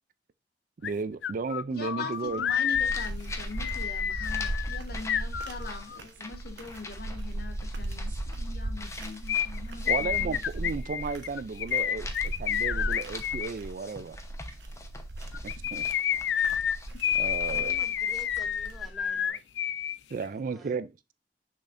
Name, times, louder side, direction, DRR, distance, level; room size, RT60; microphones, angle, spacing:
sound 1, 0.8-0.9 1.2-6.0 9.3-13.5 15.3-20.0 20.2-20.3, left 9 dB, 80° left, 0.4 m, -29 dB
voice 1, 0.8-2.4 9.9-12.1 12.4-14.2 15.4-15.9 17.1-17.8 19.3-19.4 20.1-21.1, right 4 dB, 50° right, 0.4 m, -34 dB
voice 2, 1.7-10.7, left 3 dB, 60° left, 1.4 m, -42 dB
sound 2, 2.3-19.1, right 1 dB, 80° right, 1.1 m, -37 dB
sound 3, 2.8-11.6 11.9-18.9, left 2 dB, 15° left, 0.9 m, -46 dB
voice 3, 17.7-19.4 20.3-20.8, equal, ahead, 1.8 m, -50 dB
6.5 x 6.3 x 2.6 m
head